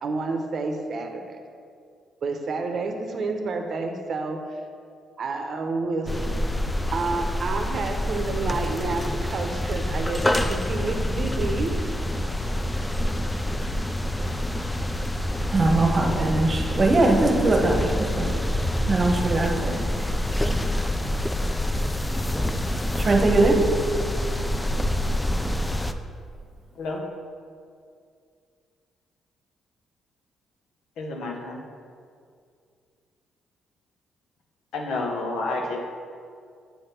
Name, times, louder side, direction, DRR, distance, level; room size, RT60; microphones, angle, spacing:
voice 1, 0.0-1.4 2.2-4.4 5.2-6.3 6.9-11.8, right 3 dB, 55° right, 4 dB, 0.7 m, -29 dB
sound 1, 6.1-25.9, left 1 dB, 10° left, 0.4 m, -26 dB
voice 2, 15.5-18.4 18.9-19.8 23.0-23.6, right 2 dB, 35° right, 2 dB, 1.0 m, -21 dB
voice 3, 31.0-31.6 34.7-35.8, left 2 dB, 80° left, 1 dB, 1.0 m, -29 dB
7.6 x 3.4 x 5.7 m, 2.2 s
cardioid pair, 90°, 0 cm